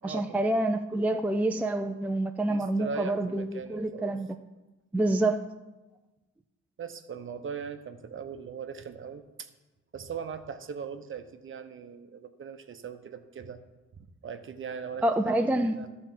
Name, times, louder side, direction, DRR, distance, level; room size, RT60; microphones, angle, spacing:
voice 1, 0.0-4.3 4.9-5.5 15.0-15.8, right 1 dB, 5° right, 6 dB, 0.4 m, -27 dB
voice 2, 2.5-4.2 6.8-9.5 9.9-13.6 13.9-15.9, right 6 dB, 40° right, 8 dB, 0.8 m, -40 dB
11.5 x 4.3 x 7.4 m, 1.1 s
cardioid pair, 90°, 30 cm